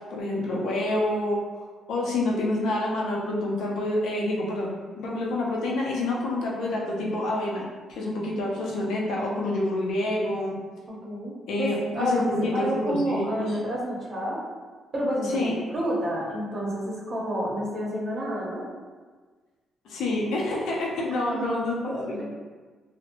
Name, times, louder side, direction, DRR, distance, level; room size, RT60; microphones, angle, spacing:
voice 1, 0.1-1.4 1.9-10.6 11.5-13.6 15.3-15.6 19.9-22.2, left 2 dB, 80° left, -2 dB, 0.5 m, -28 dB
voice 2, 10.9-14.4 14.9-18.7 21.1-22.2, equal, 40° right, -4 dB, 0.8 m, -30 dB
2.7 x 2.1 x 2.6 m, 1.4 s
cardioid pair, 90°, 0 cm